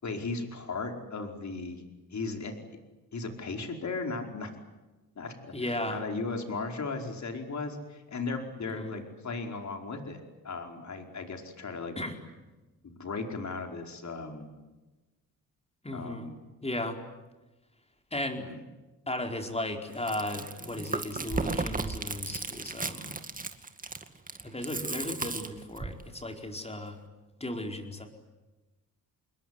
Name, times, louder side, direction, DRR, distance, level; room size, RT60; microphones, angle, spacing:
voice 1, 0.0-1.8 2.1-2.5 3.1-4.5 5.1-12.0 12.8-14.5 15.9-16.4 18.4-18.6, left 3 dB, 45° left, 4 dB, 5.0 m, -36 dB
voice 2, 5.5-6.0 8.6-9.0 12.0-12.2 15.8-16.3 16.6-17.0 18.1-18.5 19.1-23.2 24.4-27.0 27.4-28.1, left 1 dB, 15° left, 4 dB, 4.7 m, -35 dB
Chewing mastication, 19.9-26.0, right 3 dB, 20° right, 2.2 m, -35 dB
28.0 x 21.5 x 9.8 m, 1.1 s
cardioid pair, 95°, 37 cm